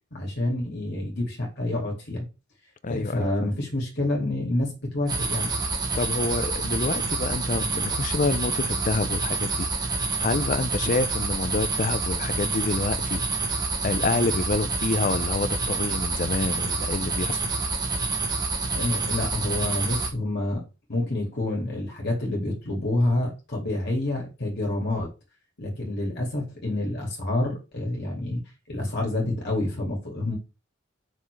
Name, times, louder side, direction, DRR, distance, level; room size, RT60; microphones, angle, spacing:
voice 1, 0.1-2.2 2.9-5.5 18.7-20.6 20.9-25.1 25.6-28.4 28.7-30.4, left 1 dB, 60° left, 2.3 m, -28 dB
voice 2, 2.8-3.3 5.9-17.5, left 3 dB, 40° left, 0.6 m, -28 dB
sound 1, 5.1-20.1, right 3 dB, 20° right, 1.5 m, -27 dB
7.1 x 6.0 x 3.3 m
head